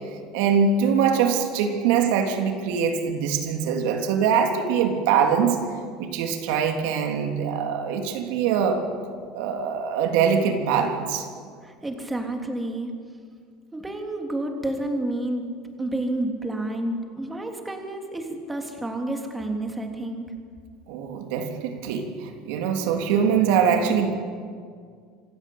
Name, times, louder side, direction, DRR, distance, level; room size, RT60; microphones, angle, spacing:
voice 1, 0.3-5.6 6.0-8.8 9.3-11.3 20.9-24.1, right 7 dB, 75° right, 4 dB, 3.3 m, -23 dB
voice 2, 11.6-12.9 13.7-15.5 15.8-20.3, right 1 dB, 10° right, 3 dB, 3.3 m, -30 dB
26.5 x 16.0 x 8.8 m, 2.1 s
supercardioid pair, 130°, 0 cm